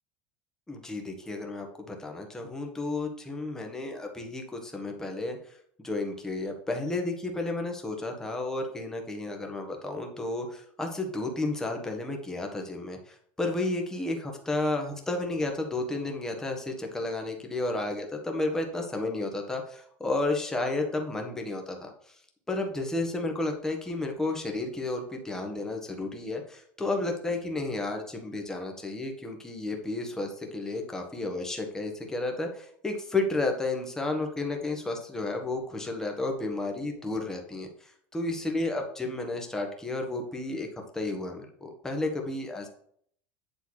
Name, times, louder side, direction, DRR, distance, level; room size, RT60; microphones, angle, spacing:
voice 1, 0.7-5.4 5.8-21.9 22.5-40.7 40.9-42.7, left 2 dB, 10° left, 2 dB, 1.3 m, -32 dB
8.5 x 3.4 x 6.3 m, 0.63 s
supercardioid pair, 145°, 7 cm